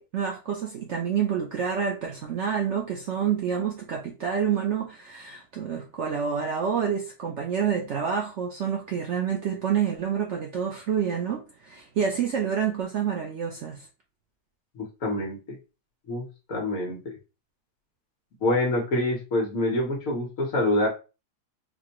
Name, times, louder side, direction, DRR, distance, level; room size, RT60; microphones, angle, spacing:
voice 1, 0.0-13.9, right 7 dB, 65° right, 1 dB, 0.7 m, -28 dB
voice 2, 14.7-15.4 16.1-17.2 18.4-20.9, left 1 dB, 60° left, -1 dB, 1.3 m, -26 dB
4.2 x 2.1 x 2.8 m, 0.30 s
omnidirectional pair, 1.7 m